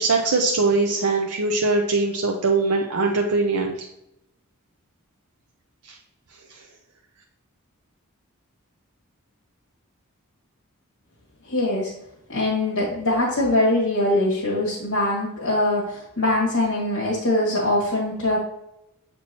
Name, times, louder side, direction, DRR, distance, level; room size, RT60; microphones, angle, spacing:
voice 1, 0.0-3.7, right 3 dB, 80° right, 1 dB, 0.6 m, -21 dB
voice 2, 11.4-11.9 12.3-18.4, left 1 dB, 65° left, -6 dB, 1.9 m, -22 dB
7.5 x 4.5 x 2.9 m, 0.84 s
head